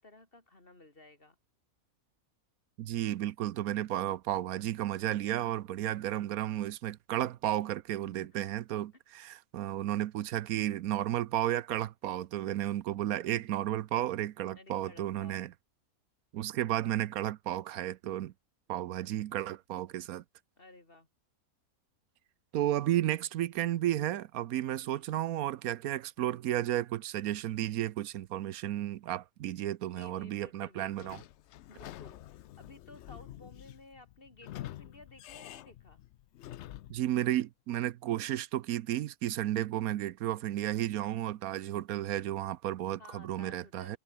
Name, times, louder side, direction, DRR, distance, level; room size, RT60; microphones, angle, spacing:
voice 1, 0.0-1.4 6.0-6.4 8.0-8.5 14.6-15.4 20.6-21.1 24.8-25.1 29.6-31.3 31.7-36.0 43.0-44.0, left 2 dB, 40° left, 3.8 m, -55 dB
voice 2, 2.8-15.5 16.3-18.3 18.7-20.2 22.5-31.2 36.9-44.0, right 13 dB, 85° right, 1.1 m, -33 dB
Sliding door / Squeak, 30.9-37.1, left 13 dB, 65° left, 0.7 m, -47 dB
omnidirectional pair, 1.5 m